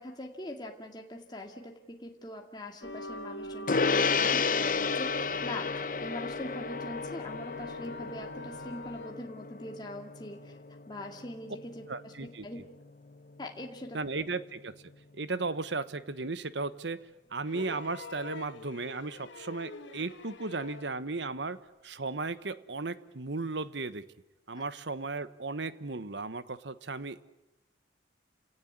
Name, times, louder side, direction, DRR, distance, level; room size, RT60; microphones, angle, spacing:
voice 1, 0.0-5.7 6.0-10.6 10.9-12.6 13.4-14.0 24.5-24.6, left 1 dB, 25° left, 2 dB, 2.2 m, -42 dB
sound 1, 2.8-9.1, left 2 dB, 70° left, 3.4 m, -43 dB
Gong, 3.7-13.4, left 5 dB, 45° left, 0.9 m, -33 dB
voice 2, 11.9-12.5 13.9-14.8 15.1-17.1 17.3-24.1 24.5-27.2, right 3 dB, 70° right, 14 dB, 1.2 m, -35 dB
sound 2, 17.4-21.0 22.3-22.4, left 3 dB, 85° left, 2.1 m, -46 dB
29.5 x 18.0 x 9.6 m, 0.98 s
head